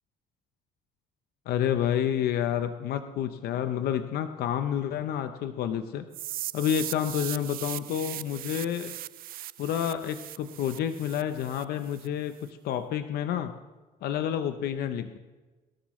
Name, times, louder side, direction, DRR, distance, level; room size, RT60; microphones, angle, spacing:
voice 1, 1.5-6.0 6.5-8.9 9.6-13.5 14.0-15.2, left 9 dB, 70° left, 9 dB, 0.8 m, -29 dB
sound 1, 6.1-12.1, right 14 dB, 60° right, 0.4 m, -39 dB
21.0 x 13.0 x 3.2 m, 1.2 s
cardioid pair, 110°, 17 cm